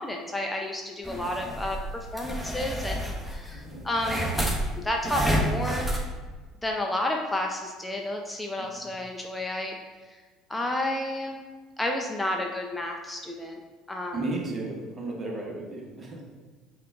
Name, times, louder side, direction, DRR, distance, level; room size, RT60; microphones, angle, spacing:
voice 1, 0.0-4.4 4.8-5.9 6.6-9.8 10.1-10.2 10.5-11.4 11.8-13.6 13.9-14.4, left 1 dB, 15° left, 1 dB, 0.5 m, -31 dB
sound 1, 1.0-6.1, right 1 dB, 10° right, 1.1 m, -30 dB
voice 2, 3.5-3.9 8.6-8.9 14.1-16.2, right 2 dB, 35° right, -1 dB, 1.2 m, -34 dB
5.7 x 2.4 x 3.5 m, 1.4 s
hypercardioid pair, 65°, 0 cm